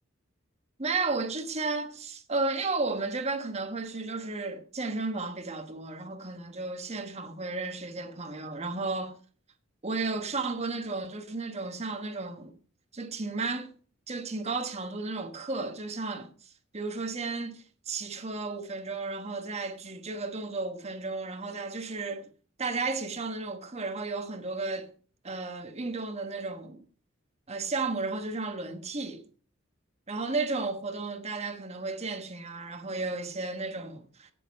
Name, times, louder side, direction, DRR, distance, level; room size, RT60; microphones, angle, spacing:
voice 1, 0.8-9.2 9.8-12.5 12.9-13.7 14.1-16.3 16.7-22.3 22.6-24.9 25.2-26.8 27.5-29.2 30.1-34.3, right 3 dB, 35° right, 1.2 m, -33 dB
9.3 x 8.3 x 5.3 m
head